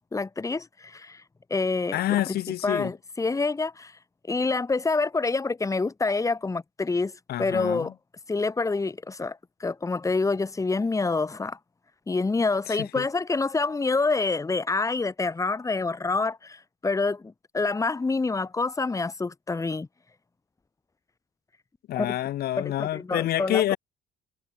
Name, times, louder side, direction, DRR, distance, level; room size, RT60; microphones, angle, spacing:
voice 1, 0.1-1.2 1.5-2.0 2.3-2.4 2.6-4.0 4.3-7.1 7.4-7.9 8.3-11.6 12.1-19.9 21.9-22.1 22.6-23.6, left 3 dB, 20° left, 3.3 m, -27 dB
voice 2, 1.9-2.9 7.3-7.9 12.7-13.0 21.9-23.8, left 13 dB, 70° left, 3.9 m, -27 dB
cardioid pair, 110°, 17 cm